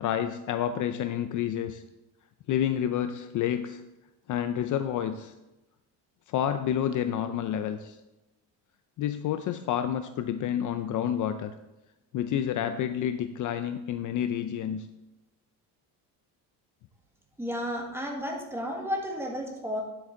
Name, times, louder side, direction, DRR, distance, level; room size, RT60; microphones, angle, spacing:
voice 1, 0.0-1.8 2.5-3.8 4.3-5.3 6.3-8.0 9.0-11.5 12.1-14.9, left 10 dB, 50° left, 9 dB, 0.5 m, -29 dB
voice 2, 17.4-19.8, equal, 5° right, 0 dB, 1.6 m, -32 dB
9.8 x 7.9 x 3.8 m, 1.0 s
cardioid pair, 145°, 42 cm